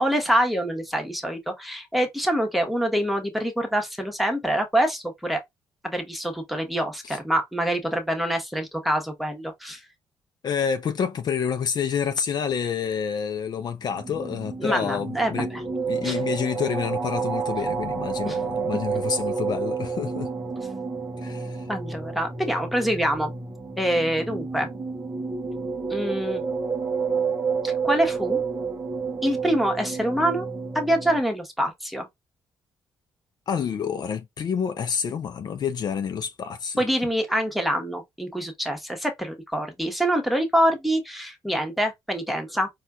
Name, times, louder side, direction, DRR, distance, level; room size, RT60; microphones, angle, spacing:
voice 1, 0.0-5.4 5.8-9.8 14.6-15.6 16.0-16.2 18.2-18.4 21.7-23.3 23.8-24.7 25.9-26.4 27.6-28.4 29.2-30.5 30.7-32.1 36.8-42.7, equal, ahead, 1.0 m, -25 dB
voice 2, 10.4-15.5 15.9-20.3 21.2-21.7 22.4-22.5 33.5-36.8, left 7 dB, 55° left, 0.4 m, -28 dB
sound 1, 13.8-31.2, right 5 dB, 30° right, 0.8 m, -30 dB
4.2 x 2.3 x 2.3 m
cardioid pair, 85°, 9 cm